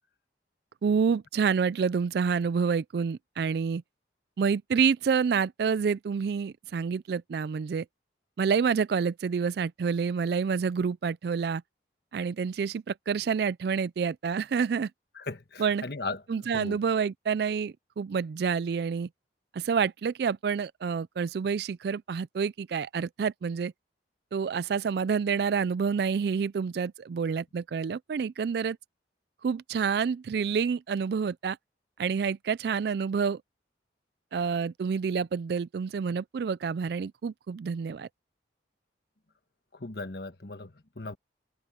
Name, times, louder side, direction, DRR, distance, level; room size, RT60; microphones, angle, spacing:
voice 1, 0.8-3.8 4.4-7.9 8.4-11.6 12.1-14.9 15.6-15.8 16.3-19.1 19.5-23.7 24.3-28.8 29.4-31.6 32.0-33.4 34.3-38.1, right 6 dB, 60° right, 0.3 m, -28 dB
voice 2, 15.1-16.8 39.7-41.2, left 3 dB, 60° left, 1.4 m, -38 dB
head